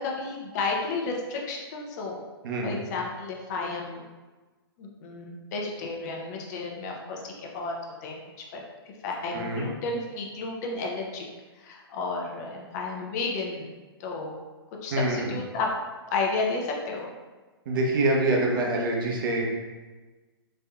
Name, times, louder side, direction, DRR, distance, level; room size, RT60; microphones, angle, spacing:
voice 1, 0.0-2.2 2.6-4.0 4.8-7.8 8.0-8.2 8.5-8.6 9.0-11.2 11.6-13.7 14.0-14.3 14.8-15.7 16.1-17.1, left 3 dB, 40° left, 0 dB, 0.6 m, -32 dB
voice 2, 2.4-2.7 9.3-9.6 14.9-15.4 17.7-19.4, right 2 dB, 55° right, -1 dB, 0.8 m, -25 dB
4.2 x 2.7 x 2.3 m, 1.3 s
figure-of-eight pair, 115°, 13 cm